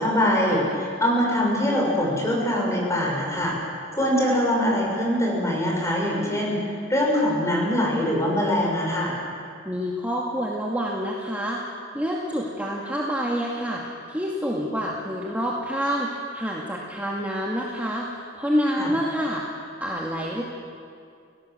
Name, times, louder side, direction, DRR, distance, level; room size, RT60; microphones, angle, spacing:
voice 1, 0.0-3.5 3.9-6.6 6.9-9.1 18.8-18.9, equal, 15° left, -2 dB, 6.5 m, -23 dB
voice 2, 9.7-11.6 11.9-20.4, equal, 10° right, -3 dB, 2.1 m, -27 dB
29.5 x 18.0 x 7.7 m, 2.3 s
head